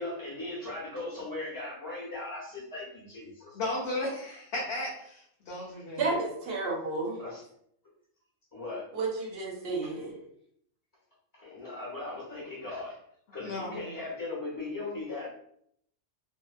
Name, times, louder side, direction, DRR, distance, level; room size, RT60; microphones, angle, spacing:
voice 1, 0.0-3.6 7.2-7.4 8.5-8.9 9.8-10.0 11.3-13.0 13.3-15.3, left 2 dB, 20° left, -6 dB, 0.8 m, -38 dB
voice 2, 3.5-6.1 13.4-13.8, left 1 dB, 65° left, -5 dB, 0.8 m, -34 dB
voice 3, 6.0-7.2 8.9-10.1, right 3 dB, 60° right, -1 dB, 0.8 m, -31 dB
2.6 x 2.1 x 2.4 m, 0.70 s
omnidirectional pair, 1.3 m